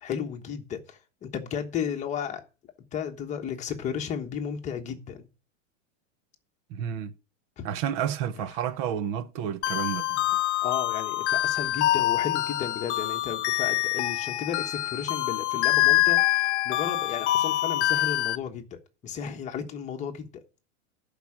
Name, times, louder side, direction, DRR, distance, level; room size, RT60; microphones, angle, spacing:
voice 1, 0.0-2.4 2.9-5.3 7.6-7.7 10.2-10.3 10.6-20.4, left 8 dB, 20° left, 1.2 m, -34 dB
voice 2, 6.7-7.1 7.6-10.2, right 9 dB, 35° right, 0.7 m, -30 dB
sound 1, 9.6-18.4, left 15 dB, 65° left, 0.7 m, -25 dB
11.5 x 4.9 x 7.2 m
supercardioid pair, 160°, 37 cm